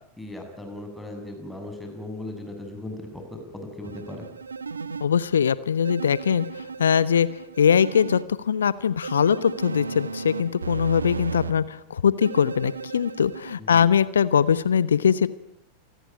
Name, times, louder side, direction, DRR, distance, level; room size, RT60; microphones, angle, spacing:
voice 1, 0.2-4.3 13.6-13.9, left 1 dB, 5° left, 4 dB, 7.2 m, -37 dB
sound 1, 3.8-5.1 5.8-8.2 9.0-11.5 12.2-13.6, right 5 dB, 75° right, 1.4 m, -35 dB
voice 2, 5.0-6.5 6.8-7.3 7.6-8.2 8.4-15.3, left 7 dB, 70° left, 17 dB, 1.1 m, -21 dB
28.0 x 19.5 x 9.1 m, 0.73 s
figure-of-eight pair, 90°, 0 cm